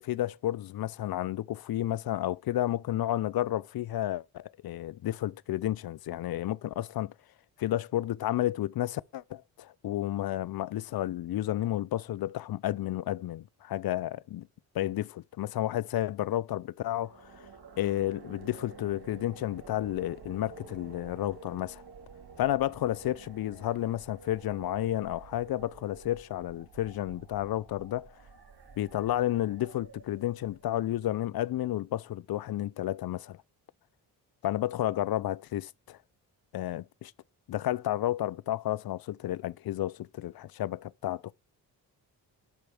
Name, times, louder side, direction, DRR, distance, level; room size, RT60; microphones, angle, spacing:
voice 1, 0.0-7.1 7.6-14.5 14.7-17.5 17.8-21.8 22.4-28.1 28.8-33.4 34.4-36.0 36.5-37.1 37.5-41.3, left 13 dB, 50° left, 0.6 m, -31 dB
sound 1, 16.8-30.9, right 5 dB, 55° right, 3.0 m, -50 dB
12.0 x 4.6 x 5.8 m
supercardioid pair, 50°, 47 cm